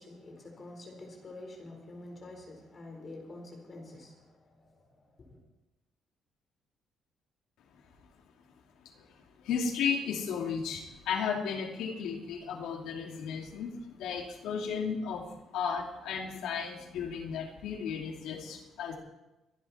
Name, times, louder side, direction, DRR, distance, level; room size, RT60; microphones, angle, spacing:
voice 1, 0.0-5.4, left 2 dB, 35° left, 2 dB, 4.3 m, -48 dB
voice 2, 9.4-15.3 15.5-18.9, left 6 dB, 85° left, 2 dB, 2.6 m, -34 dB
24.0 x 11.0 x 4.3 m, 1.0 s
cardioid pair, 135°, 0 cm